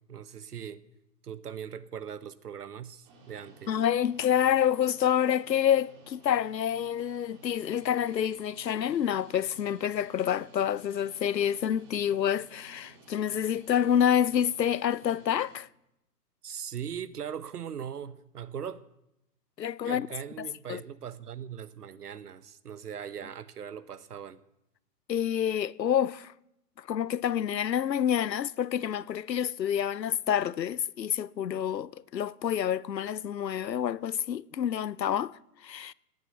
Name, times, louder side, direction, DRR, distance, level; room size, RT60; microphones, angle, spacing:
voice 1, 0.1-0.8 1.2-3.8 16.4-18.8 19.8-24.4, right 8 dB, 65° right, 1.1 m, -40 dB
sound 1, 3.0-15.6, right 3 dB, 30° right, 2.8 m, -55 dB
voice 2, 3.7-15.7 19.6-20.1 20.4-20.8 25.1-26.3 26.8-35.9, left 9 dB, 85° left, 0.7 m, -28 dB
18.0 x 9.2 x 6.9 m
figure-of-eight pair, 135°, 49 cm